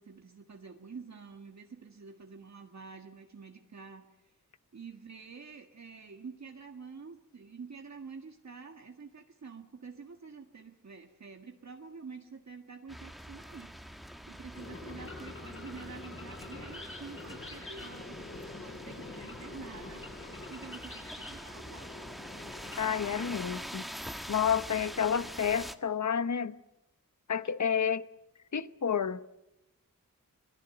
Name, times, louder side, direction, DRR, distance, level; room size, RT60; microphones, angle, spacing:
voice 1, 0.0-4.3 4.7-13.8 14.3-20.0 20.5-21.9, right 5 dB, 55° right, 1.7 m, -48 dB
sound 1, 12.9-25.7, equal, ahead, 1.3 m, -45 dB
sound 2, 14.5-23.5, left 2 dB, 40° left, 7.4 m, -46 dB
voice 2, 22.8-23.9 24.3-26.6 27.3-28.1 28.5-29.2, left 7 dB, 60° left, 0.9 m, -30 dB
26.5 x 19.0 x 7.8 m
wide cardioid pair, 85°, 33 cm